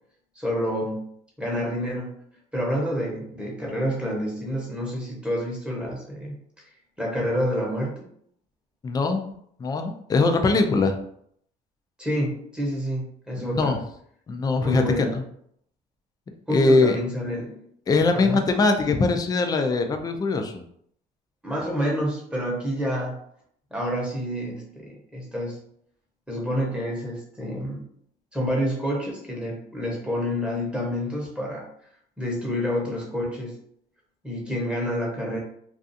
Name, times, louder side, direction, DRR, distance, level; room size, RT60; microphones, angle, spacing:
voice 1, 0.4-1.1 1.4-2.2 2.5-6.3 7.0-8.0 12.0-13.8 14.6-15.2 16.5-17.7 18.1-18.4 21.4-23.2 23.7-25.6 26.3-27.8 28.3-31.6 32.2-33.5 34.2-35.4, equal, 5° right, -3 dB, 0.8 m, -28 dB
voice 2, 8.8-9.3 9.6-11.0 13.4-13.8 14.3-15.1 16.5-17.0 17.9-20.6, left 3 dB, 20° left, 5 dB, 0.3 m, -21 dB
2.4 x 2.3 x 2.6 m, 0.67 s
cardioid pair, 110°, 17 cm